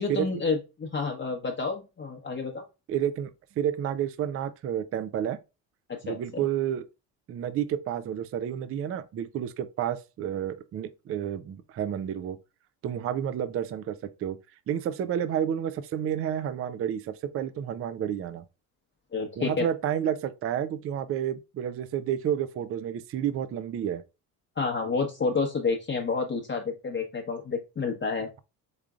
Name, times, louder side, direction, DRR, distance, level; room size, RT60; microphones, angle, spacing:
voice 1, 0.0-2.6 5.9-6.4 19.1-19.7 24.6-28.3, left 4 dB, 25° left, 0.9 m, -29 dB
voice 2, 2.9-5.4 6.0-6.8 7.3-12.4 12.8-14.4 14.7-18.4 19.4-24.0, right 9 dB, 30° right, 0.4 m, -30 dB
5.0 x 3.6 x 2.3 m
hypercardioid pair, 65°, 50 cm